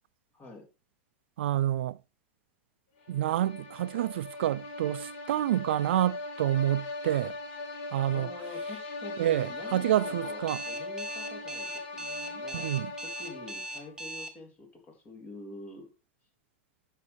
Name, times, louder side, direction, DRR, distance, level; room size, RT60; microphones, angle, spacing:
voice 1, 0.3-0.7 8.1-10.4 10.7-12.7 13.0-15.9, left 2 dB, 25° left, 3.4 m, -47 dB
voice 2, 1.4-2.0 3.1-7.4 7.9-8.3 9.2-10.6 12.5-12.9, right 12 dB, 85° right, 0.4 m, -28 dB
sound 1, 3.0-14.0, left 2 dB, 65° left, 2.8 m, -40 dB
Alarm, 10.5-14.3, equal, 10° right, 1.5 m, -39 dB
12.0 x 6.3 x 3.4 m
supercardioid pair, 135°, 6 cm